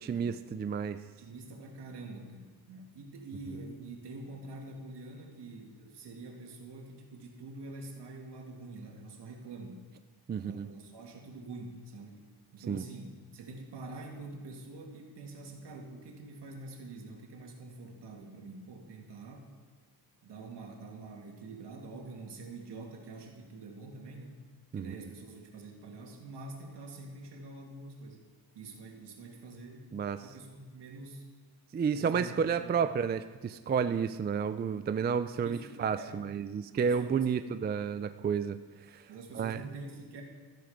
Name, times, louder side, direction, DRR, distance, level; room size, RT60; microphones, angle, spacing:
voice 1, 0.0-1.0 10.3-10.7 12.7-12.9 24.7-24.9 29.9-30.3 31.7-38.6 38.9-39.1 39.3-39.6, right 6 dB, 25° right, 10 dB, 0.4 m, -31 dB
voice 2, 1.1-9.8 10.4-12.3 12.5-19.5 20.2-24.4 24.7-28.2 28.5-30.0 30.2-31.3 31.9-32.3 32.6-32.9 35.4-35.7 36.0-36.3 36.8-37.5 39.1-40.2, right 3 dB, 75° right, 1 dB, 2.7 m, -46 dB
13.5 x 13.5 x 5.2 m, 1.4 s
wide cardioid pair, 150°, 41 cm